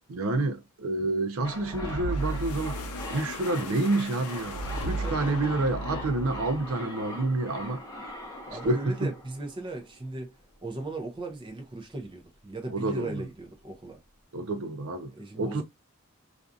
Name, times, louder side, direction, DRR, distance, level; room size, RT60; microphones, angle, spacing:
voice 1, 0.1-2.8 3.1-7.8 8.6-9.1 12.7-13.2 14.3-15.1 15.4-15.6, right 2 dB, 70° right, 0.5 m, -28 dB
sound 1, 1.4-10.2 10.5-10.6, left 1 dB, 15° left, 0.7 m, -42 dB
sound 2, 1.5-6.8, right 1 dB, 80° left, 0.5 m, -35 dB
voice 2, 5.0-5.4 8.5-10.3 10.6-14.0 15.1-15.6, right 2 dB, 20° right, 0.5 m, -37 dB
2.5 x 2.3 x 2.5 m
head